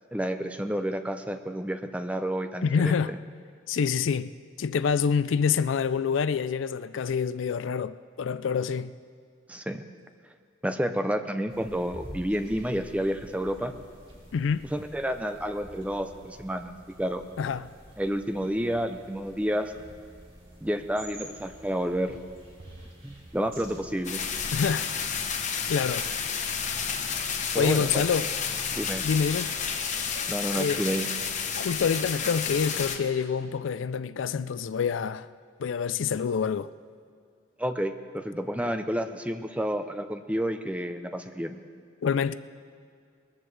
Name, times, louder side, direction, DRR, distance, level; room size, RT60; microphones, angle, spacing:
voice 1, 0.1-3.2 9.5-9.8 10.6-13.7 14.7-16.7 17.0-17.2 18.0-19.7 20.6-22.2 23.0-24.2 27.5-28.1 28.7-29.0 30.3-31.1 37.6-41.6, equal, 5° right, 0.6 m, -30 dB
voice 2, 2.6-3.1 3.7-4.3 4.6-8.9 14.3-14.7 17.4-17.7 24.5-24.9 25.7-26.1 27.6-28.3 29.0-29.5 30.6-30.8 31.6-35.3 35.6-36.7 42.0-42.4, left 6 dB, 80° left, 0.4 m, -26 dB
sound 1, 11.5-24.6, right 1 dB, 30° right, 2.7 m, -49 dB
sound 2, 22.6-23.4 23.7-24.2 25.0-25.1 25.4-25.7 26.3-31.8, right 2 dB, 60° right, 1.1 m, -52 dB
sound 3, 24.0-33.0, left 6 dB, 40° left, 1.0 m, -31 dB
20.5 x 14.5 x 3.3 m
head